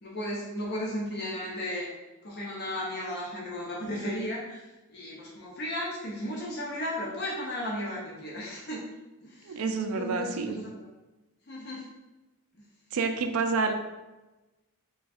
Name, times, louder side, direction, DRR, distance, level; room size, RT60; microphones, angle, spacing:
voice 1, 0.0-1.9 2.2-8.8 9.2-10.9 11.5-11.9 12.5-12.6, left 1 dB, 50° left, -4 dB, 0.7 m, -35 dB
voice 2, 9.4-10.6 12.9-13.7, right 4 dB, 85° right, 6 dB, 0.4 m, -28 dB
3.3 x 2.3 x 4.1 m, 1.1 s
head